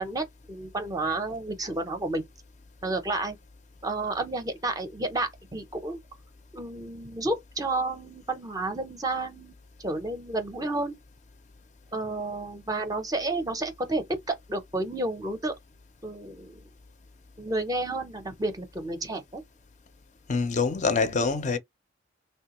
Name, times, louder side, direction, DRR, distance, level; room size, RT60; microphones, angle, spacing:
voice 1, 0.0-2.2 2.8-3.4 3.8-6.0 6.5-9.5 9.8-11.0 11.9-15.5 16.0-16.6 17.4-19.4, right 2 dB, 20° right, 0.5 m, -31 dB
voice 2, 20.3-21.6, left 4 dB, 40° left, 0.4 m, -25 dB
3.1 x 2.2 x 2.9 m
head